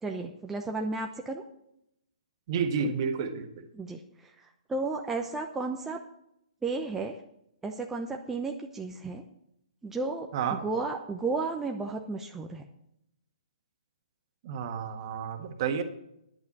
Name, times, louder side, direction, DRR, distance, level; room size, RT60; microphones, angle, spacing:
voice 1, 0.0-1.4 3.7-6.0 6.6-7.2 7.6-9.2 9.8-12.6, right 3 dB, 10° right, 2 dB, 0.7 m, -33 dB
voice 2, 2.5-3.6 10.3-10.6 14.4-15.8, right 6 dB, 40° right, 6 dB, 1.5 m, -30 dB
11.0 x 8.3 x 6.1 m, 0.77 s
figure-of-eight pair, 130°, 4 cm